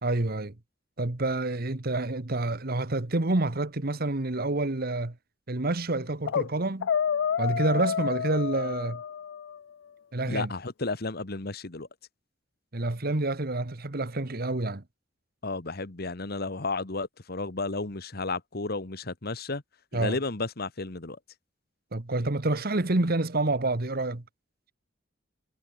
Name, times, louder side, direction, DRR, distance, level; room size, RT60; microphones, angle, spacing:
voice 1, 0.0-0.5 1.0-5.1 5.5-6.9 7.4-9.0 10.1-10.5 12.7-14.8 19.9-20.2 21.9-24.2, right 2 dB, 55° right, 1.4 m, -28 dB
sound 1, 6.0-6.5 6.8-9.6, left 7 dB, 80° left, 0.4 m, -29 dB
voice 2, 10.3-11.9 15.4-19.6 19.9-21.2, left 3 dB, 55° left, 1.5 m, -33 dB
head